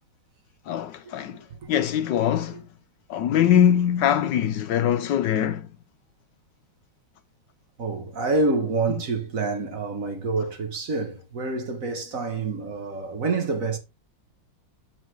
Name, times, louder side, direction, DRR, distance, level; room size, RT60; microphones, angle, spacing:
voice 1, 0.7-2.7 3.1-5.7, left 9 dB, 75° left, 1.2 m, -22 dB
voice 2, 7.8-13.8, right 3 dB, 45° right, 1.6 m, -27 dB
7.9 x 6.5 x 3.4 m
omnidirectional pair, 2.2 m